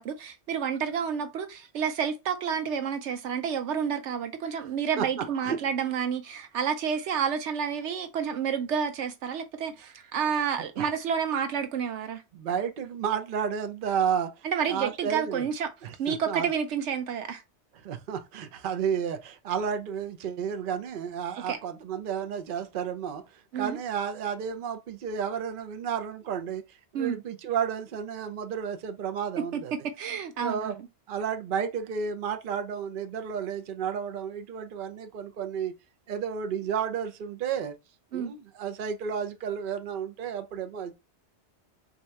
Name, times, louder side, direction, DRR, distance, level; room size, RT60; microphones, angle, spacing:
voice 1, 0.0-12.2 14.4-15.7 16.0-17.4 21.5-21.6 23.5-23.8 26.9-27.2 29.4-30.8 38.1-38.3, right 7 dB, 90° right, 1.0 m, -30 dB
voice 2, 12.3-15.4 15.8-16.5 17.8-23.2 23.5-26.6 26.9-29.7 30.4-30.8 31.1-35.7 36.1-37.7 38.1-40.9, right 7 dB, 55° right, 0.7 m, -32 dB
3.6 x 2.8 x 4.3 m
omnidirectional pair, 1.2 m